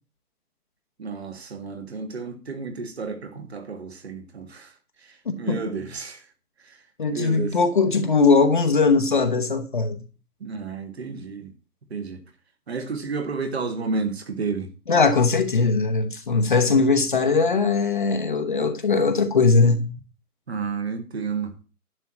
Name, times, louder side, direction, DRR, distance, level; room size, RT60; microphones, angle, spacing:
voice 1, 1.0-4.7 5.0-6.2 6.6-6.8 7.1-7.6 10.4-11.5 11.9-12.2 12.7-14.7 20.5-21.5, right 4 dB, 40° right, 1.8 m, -31 dB
voice 2, 7.0-10.0 14.9-19.9, left 4 dB, 30° left, 1.0 m, -20 dB
11.0 x 4.5 x 7.6 m
figure-of-eight pair, 155°, 47 cm